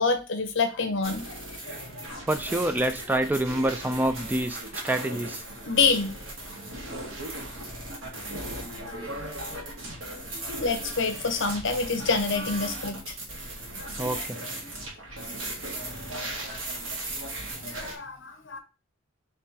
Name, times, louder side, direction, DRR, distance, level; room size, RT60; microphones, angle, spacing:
voice 1, 0.0-1.4 1.7-2.2 5.7-6.1 10.6-13.1 13.7-13.9 17.6-18.6, left 4 dB, 65° left, 8 dB, 0.8 m, -27 dB
sound 1, 1.0-17.9, right 1 dB, 85° right, 1.6 m, -37 dB
voice 2, 2.3-5.4 14.0-14.4, right 1 dB, 10° right, 9 dB, 0.3 m, -27 dB
3.5 x 3.2 x 4.3 m, 0.30 s
head